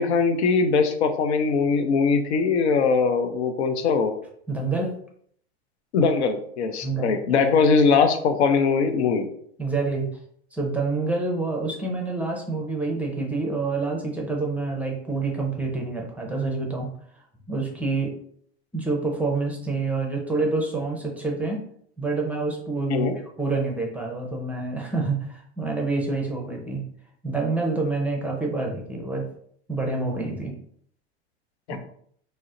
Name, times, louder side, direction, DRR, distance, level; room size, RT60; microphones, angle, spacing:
voice 1, 0.0-4.1 5.9-9.3 22.9-23.1 31.7-31.8, left 5 dB, 85° left, 8 dB, 0.6 m, -21 dB
voice 2, 4.5-5.0 6.8-7.5 9.6-10.1 10.5-16.9 17.5-18.2 18.7-21.6 22.0-23.1 23.4-26.8 27.2-29.3 29.7-30.6 31.7-31.8, right 3 dB, 5° right, 0 dB, 0.6 m, -27 dB
3.9 x 2.0 x 2.5 m, 0.64 s
hypercardioid pair, 110°, 33 cm